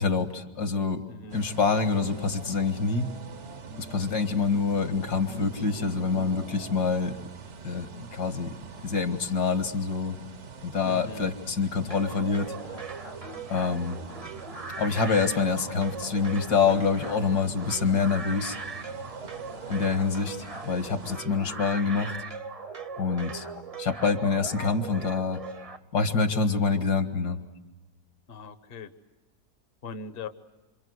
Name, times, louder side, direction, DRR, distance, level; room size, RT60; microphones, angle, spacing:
voice 1, 0.0-1.0 1.3-3.1 3.8-7.3 7.6-8.5 8.8-10.2 10.6-12.6 13.5-14.0 14.8-18.6 19.7-22.2 23.0-23.5 23.8-25.4 25.9-27.4, left 5 dB, 70° left, 8 dB, 2.2 m, -26 dB
voice 2, 1.1-1.4 10.8-11.3 28.3-28.9 29.8-30.3, left 4 dB, 40° left, 10 dB, 1.1 m, -40 dB
sound 1, 1.3-21.2, right 4 dB, 50° right, 1.2 m, -44 dB
sound 2, 11.9-25.8, right 4 dB, 25° right, 0.9 m, -39 dB
28.0 x 26.5 x 8.0 m, 1.1 s
omnidirectional pair, 1.8 m